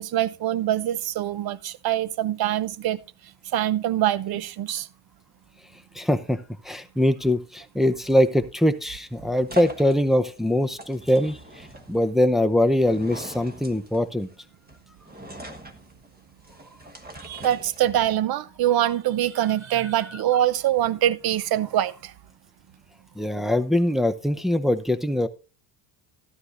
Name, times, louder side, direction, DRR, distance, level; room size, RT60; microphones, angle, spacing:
voice 1, 0.0-3.0 3.5-4.9 17.2-22.1, right 12 dB, 50° right, 0.6 m, -24 dB
voice 2, 5.9-14.3 23.2-25.3, left 1 dB, ahead, 0.6 m, -22 dB
sound 1, 8.4-18.2, equal, 20° right, 1.3 m, -42 dB
13.0 x 11.0 x 2.5 m
supercardioid pair, 90°, 50 cm